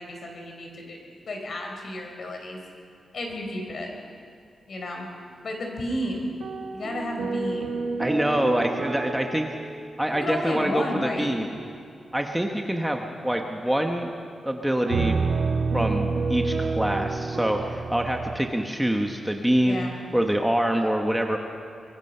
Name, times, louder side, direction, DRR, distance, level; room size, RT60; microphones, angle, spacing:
voice 1, 0.0-2.6 3.1-3.9 4.7-5.1 5.4-6.3 6.7-7.8 10.1-11.3 19.6-20.0, left 1 dB, 50° left, 2 dB, 4.4 m, -32 dB
sound 1, 6.4-10.9 11.5-11.9 14.9-18.4, right 4 dB, 85° right, 1.4 m, -29 dB
voice 2, 8.0-9.5 10.0-11.5 12.1-14.1 14.4-15.2 15.7-19.8 20.1-21.4, right 1 dB, 5° right, 2 dB, 1.1 m, -25 dB
23.5 x 22.5 x 5.5 m, 2.4 s
wide cardioid pair, 165°, 0 cm